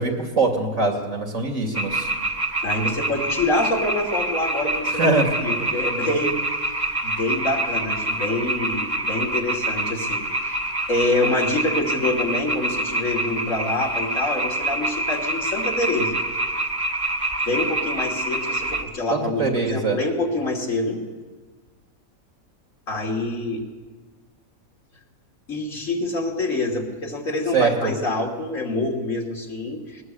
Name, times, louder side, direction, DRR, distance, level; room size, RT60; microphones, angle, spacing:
voice 1, 0.0-2.1 5.0-5.3 19.1-20.0 27.5-27.9, right 3 dB, 65° right, 3 dB, 3.3 m, -22 dB
sound 1, 1.7-18.8, right 1 dB, 25° right, 1.5 m, -26 dB
voice 2, 2.6-5.2 5.4-6.4 7.0-10.6 10.9-16.2 17.4-21.0 22.9-23.6 25.5-30.0, left 2 dB, 65° left, 1 dB, 3.1 m, -26 dB
20.0 x 20.0 x 8.0 m, 1.3 s
omnidirectional pair, 1.5 m